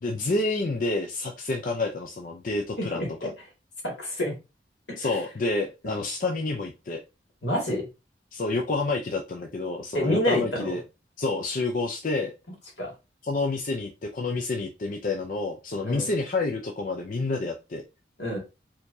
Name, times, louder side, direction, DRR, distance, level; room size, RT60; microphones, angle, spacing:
voice 1, 0.0-3.3 5.0-7.0 8.3-10.8 11.2-12.3 13.2-17.8, left 3 dB, 45° left, 2 dB, 0.5 m, -29 dB
voice 2, 2.8-3.1 3.8-4.3 4.9-5.2 5.8-6.0 7.4-7.9 9.9-10.7 12.8-12.9 15.8-16.1 18.2-18.4, left 1 dB, 80° left, -1 dB, 2.1 m, -28 dB
4.4 x 2.9 x 2.6 m, 0.27 s
head